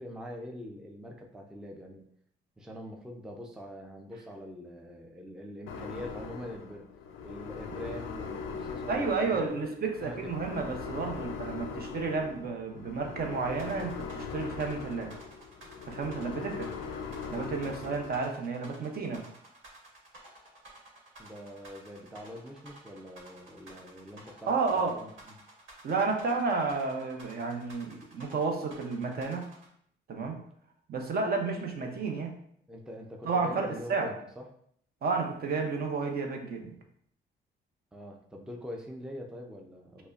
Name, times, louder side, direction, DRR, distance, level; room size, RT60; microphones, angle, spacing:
voice 1, 0.0-2.1 2.6-6.9 7.2-9.6 10.0-10.3 21.2-25.4 32.7-34.5 37.9-40.1, equal, 5° right, 1 dB, 0.4 m, -43 dB
sound 1, 5.7-18.2, left 5 dB, 85° left, 0.5 m, -40 dB
voice 2, 8.9-15.1 15.9-16.7 17.3-19.2 24.5-25.0 25.8-29.5 30.1-30.4 30.9-32.3 33.2-34.1 35.0-36.8, right 4 dB, 50° right, 3 dB, 0.7 m, -31 dB
sound 2, 13.6-29.7, right 2 dB, 75° right, 1.3 m, -52 dB
5.2 x 2.1 x 2.4 m, 0.66 s
cardioid pair, 90°, 20 cm